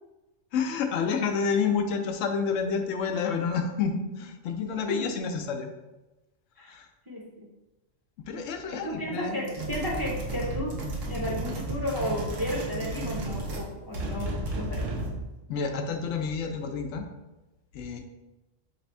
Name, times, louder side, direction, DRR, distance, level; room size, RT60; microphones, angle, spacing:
voice 1, 0.5-5.7 6.6-6.9 8.3-9.5 15.5-17.0 17.7-18.0, left 5 dB, 85° left, 5 dB, 0.9 m, -29 dB
voice 2, 8.7-10.7 11.1-14.8, equal, 25° right, -3 dB, 0.6 m, -33 dB
sound 1, 9.4-13.7 13.9-15.2, right 2 dB, 85° right, 1.2 m, -33 dB
3.4 x 3.3 x 4.2 m, 1.0 s
omnidirectional pair, 1.3 m